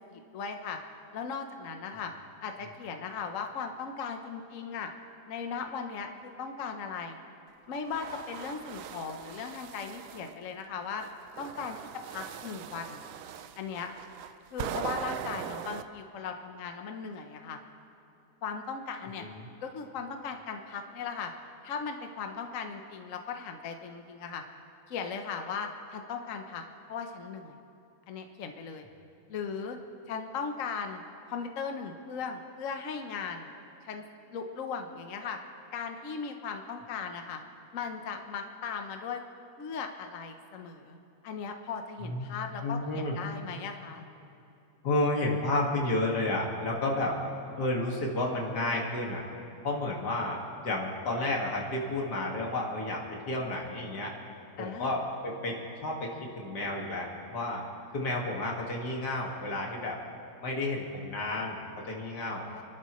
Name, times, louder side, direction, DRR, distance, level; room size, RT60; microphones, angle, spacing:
voice 1, 0.1-0.8 1.1-2.1 2.4-4.9 5.3-6.1 6.4-7.2 7.7-11.0 11.4-13.0 13.6-13.9 14.5-17.6 18.4-19.3 19.6-21.3 21.6-24.4 24.9-26.6 26.9-27.6 28.1-28.9 29.3-29.8 30.1-31.0 31.3-33.5 33.8-34.0 34.3-35.4 35.7-37.4 37.7-39.2 39.6-41.0 41.2-44.0 54.6-54.9 62.4-62.6, left 6 dB, 55° left, 5 dB, 1.2 m, -37 dB
sound 1, 7.7-10.3 11.0-15.8, right 9 dB, 70° right, 0.9 m, -41 dB
voice 2, 42.0-43.2 44.8-47.2 47.6-49.2 49.6-54.1 54.6-56.1 56.4-57.6 57.9-60.0 60.4-62.4, left 2 dB, 90° left, -1 dB, 2.6 m, -31 dB
29.5 x 12.0 x 3.1 m, 2.9 s
omnidirectional pair, 1.7 m